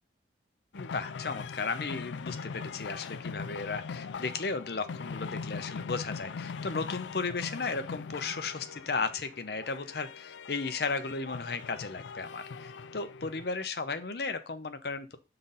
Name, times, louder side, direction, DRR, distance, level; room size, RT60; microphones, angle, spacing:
sound 1, 0.7-13.5, left 5 dB, 85° left, 0.4 m, -41 dB
voice 1, 0.7-15.2, left 4 dB, 60° left, 9 dB, 0.7 m, -35 dB
5.7 x 3.9 x 5.5 m, 0.30 s
head